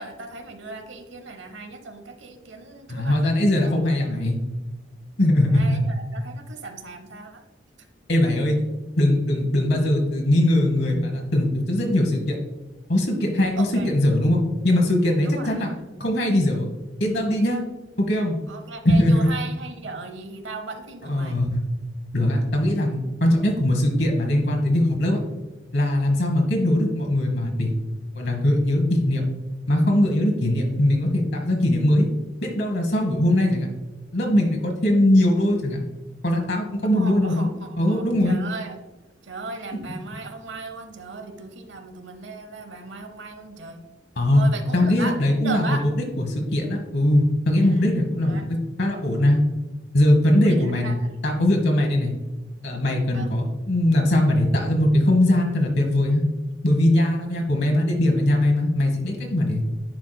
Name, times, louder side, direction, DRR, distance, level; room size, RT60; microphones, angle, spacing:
voice 1, 0.0-3.2 5.4-7.4 13.6-13.9 15.2-15.9 18.5-21.4 36.8-38.8 39.2-43.8 44.3-45.8 47.6-48.5 50.3-51.0 53.1-53.3, right 3 dB, 75° right, 7 dB, 0.9 m, -37 dB
voice 2, 2.9-4.4 5.2-5.8 8.1-8.6 9.0-12.4 12.9-15.7 16.0-16.7 17.0-17.7 18.0-18.4 18.8-19.3 21.0-21.6 22.1-25.2 25.7-27.7 28.1-29.2 29.7-32.1 32.4-33.7 34.1-35.8 36.2-37.5 37.8-38.4 44.2-44.4 44.7-45.9 46.2-49.4 49.9-51.0 51.2-52.1 52.6-56.2 56.6-59.6, left 1 dB, 60° left, 1 dB, 1.1 m, -21 dB
10.5 x 4.6 x 2.2 m, 1.1 s
head